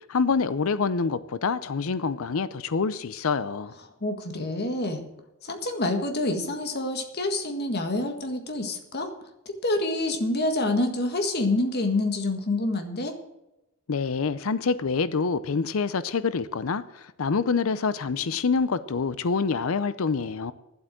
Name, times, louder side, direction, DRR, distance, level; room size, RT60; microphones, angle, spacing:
voice 1, 0.1-3.7 13.9-20.5, left 5 dB, 70° left, 0.6 m, -26 dB
voice 2, 4.0-5.0 5.4-9.1 9.6-13.2, left 2 dB, 50° left, 1.7 m, -27 dB
11.5 x 8.0 x 7.6 m
head